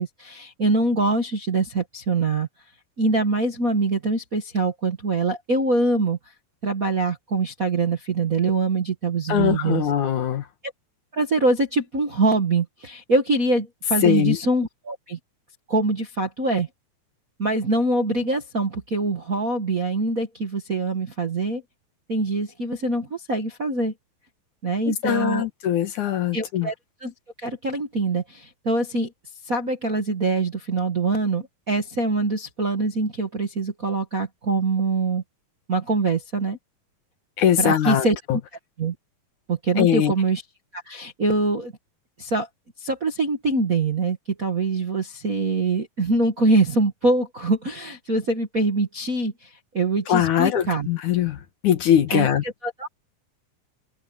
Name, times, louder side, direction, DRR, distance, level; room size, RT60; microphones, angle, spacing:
voice 1, 0.0-2.5 3.0-6.2 6.6-9.8 10.6-10.7 11.1-15.2 15.7-16.7 17.4-21.6 22.1-23.9 24.6-25.4 26.3-26.7 27.0-27.1 27.4-29.1 29.4-35.2 35.7-36.6 37.6-38.4 38.8-38.9 39.5-40.4 40.7-41.7 42.2-42.5 42.8-50.9 52.1-52.9, right 3 dB, 40° right, 1.3 m, -24 dB
voice 2, 9.3-10.4 14.0-14.4 24.9-26.7 37.4-38.4 39.8-40.1 50.1-52.4, left 10 dB, 65° left, 2.6 m, -21 dB
open air
omnidirectional pair, 4.1 m